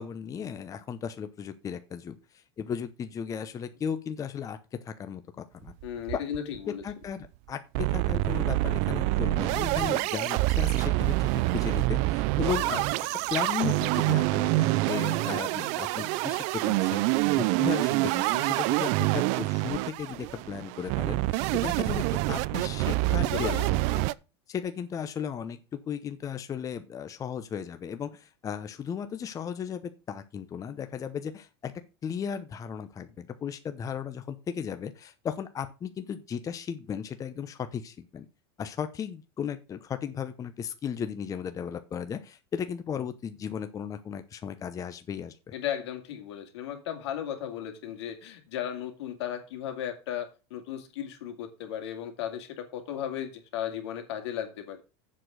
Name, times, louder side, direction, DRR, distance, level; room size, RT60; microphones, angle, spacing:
voice 1, 0.0-2.2 2.6-4.6 4.8-5.7 6.1-6.2 6.8-12.9 13.3-23.6 23.9-24.1 24.5-31.7 32.0-38.3 38.6-45.4, left 7 dB, 25° left, 9 dB, 0.8 m, -35 dB
sound 1, 5.7-6.6 6.9-7.0 7.2-7.3 7.7-24.1, right 20 dB, 55° right, 0.5 m, -26 dB
voice 2, 5.8-6.8 23.1-23.8 45.5-54.8, left 10 dB, 80° left, 6 dB, 2.5 m, -35 dB
7.6 x 6.1 x 6.4 m, 0.30 s
supercardioid pair, 130°, 14 cm